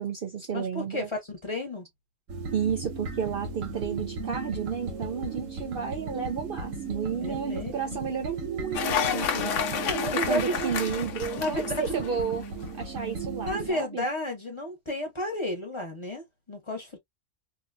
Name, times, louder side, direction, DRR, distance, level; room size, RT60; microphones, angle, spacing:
voice 1, 0.0-1.1 2.5-9.5 10.3-12.4 12.8-14.0, right 7 dB, 55° right, 0.7 m, -32 dB
voice 2, 0.5-1.9 7.2-8.1 9.8-10.6 11.3-12.0 13.4-17.0, left 1 dB, 25° left, 1.1 m, -32 dB
sound 1, 2.3-13.7, right 5 dB, 85° right, 1.1 m, -36 dB
Cheering / Applause, 8.7-12.5, left 8 dB, 75° left, 1.0 m, -30 dB
2.8 x 2.3 x 2.6 m
omnidirectional pair, 1.3 m